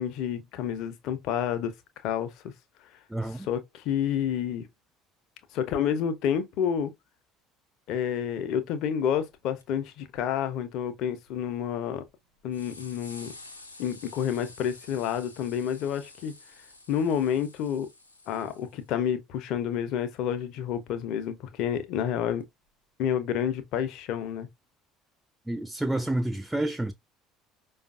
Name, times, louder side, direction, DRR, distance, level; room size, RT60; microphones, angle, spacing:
voice 1, 0.0-1.7 2.0-2.3 3.3-4.7 5.5-6.9 7.9-12.0 12.4-13.3 13.8-16.3 16.9-17.9 18.3-22.4 23.0-24.5, left 9 dB, 55° left, 0.6 m, -29 dB
voice 2, 3.1-3.5 25.5-26.9, right 1 dB, 5° right, 0.4 m, -29 dB
sound 1, 9.3-9.4 9.6-9.7 10.0-10.2 10.8-11.5 12.1-12.2 12.5-18.9 21.0-21.1 22.4-22.5, left 2 dB, 85° left, 0.8 m, -50 dB
4.9 x 2.4 x 2.4 m
figure-of-eight pair, 60°, 0 cm